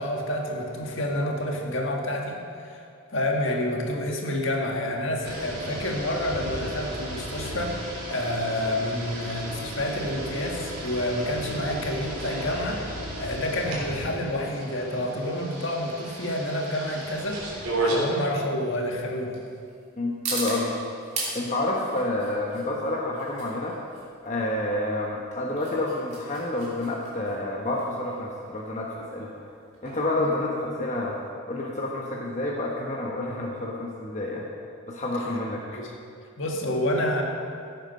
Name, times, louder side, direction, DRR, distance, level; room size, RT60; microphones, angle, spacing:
voice 1, 0.0-2.8 3.1-12.8 13.2-19.4 30.2-30.4 35.7-35.9 36.4-37.2, left 1 dB, 60° left, 0 dB, 1.8 m, -29 dB
sound 1, 5.2-18.0, right 1 dB, 85° right, 3.6 m, -34 dB
sound 2, 14.6-31.3, right 3 dB, 30° right, 2.8 m, -40 dB
voice 2, 20.0-20.7 21.3-23.8 24.2-29.3 29.8-31.2 31.5-34.5 34.9-35.8, left 2 dB, 35° left, -3 dB, 1.1 m, -29 dB
16.0 x 8.8 x 5.5 m, 2.4 s
head